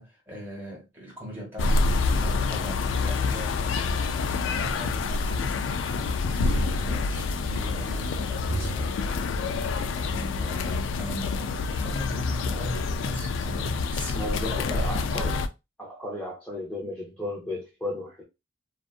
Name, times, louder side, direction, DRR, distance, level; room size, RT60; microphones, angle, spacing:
voice 1, 0.0-5.7 6.3-9.0 9.9-15.1, equal, 10° right, 1.3 m, -40 dB
sound 1, 1.6-15.5, left 4 dB, 85° left, 0.3 m, -27 dB
Bowed string instrument, 8.5-11.0, right 3 dB, 80° right, 0.5 m, -39 dB
voice 2, 14.1-15.4 15.8-18.2, left 1 dB, 5° left, 0.6 m, -34 dB
2.6 x 2.3 x 2.4 m
head